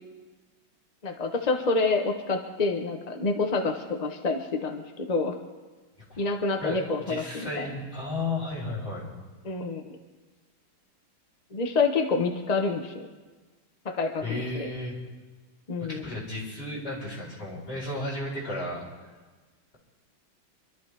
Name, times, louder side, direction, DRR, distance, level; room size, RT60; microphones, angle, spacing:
voice 1, 1.0-5.4 6.2-7.7 9.4-10.0 11.5-12.9 13.8-14.7 15.7-16.0, left 3 dB, 50° left, 3 dB, 0.5 m, -27 dB
voice 2, 6.6-9.1 14.2-15.0 15.8-18.8, left 2 dB, 30° left, -5 dB, 4.6 m, -34 dB
26.0 x 12.5 x 3.4 m, 1.3 s
omnidirectional pair, 2.3 m